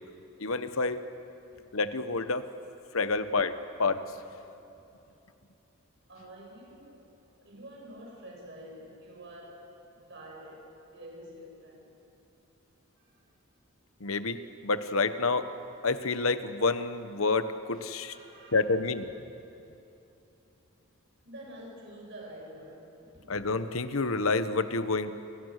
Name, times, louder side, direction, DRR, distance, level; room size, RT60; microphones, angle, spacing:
voice 1, 0.4-1.0 1.7-2.5 2.9-4.0 14.0-15.5 15.8-18.1 18.5-19.1 23.3-25.2, left 3 dB, 75° left, 11 dB, 1.2 m, -28 dB
voice 2, 1.3-1.7 4.7-4.8 6.1-7.1 7.4-11.9 13.0-13.3 18.1-18.7 21.2-23.4, right 1 dB, 55° right, -1 dB, 8.0 m, -48 dB
29.5 x 26.0 x 6.6 m, 2.9 s
head